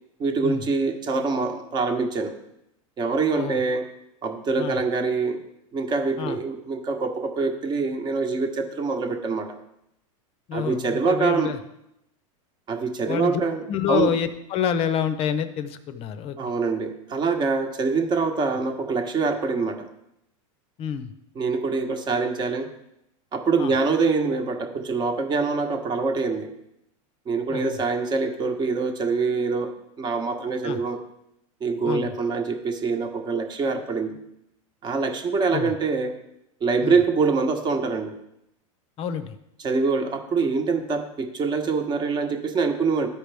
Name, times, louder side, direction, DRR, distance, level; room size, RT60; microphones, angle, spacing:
voice 1, 0.2-2.4 3.0-3.8 4.2-5.4 5.7-9.6 10.5-11.5 12.7-14.1 16.4-19.9 21.3-22.7 23.3-26.5 27.3-29.7 30.0-31.0 31.6-34.2 34.8-36.1 36.6-38.1 39.6-43.1, right 4 dB, 25° right, 5 dB, 1.1 m, -25 dB
voice 2, 10.5-11.6 13.1-13.4 13.7-16.6 20.8-21.1 23.6-23.7 27.5-27.8 30.6-30.8 31.9-32.1 35.5-35.8 36.8-37.0 39.0-39.4, left 8 dB, 35° left, 11 dB, 0.8 m, -28 dB
13.5 x 5.1 x 3.4 m, 0.82 s
supercardioid pair, 130°, 18 cm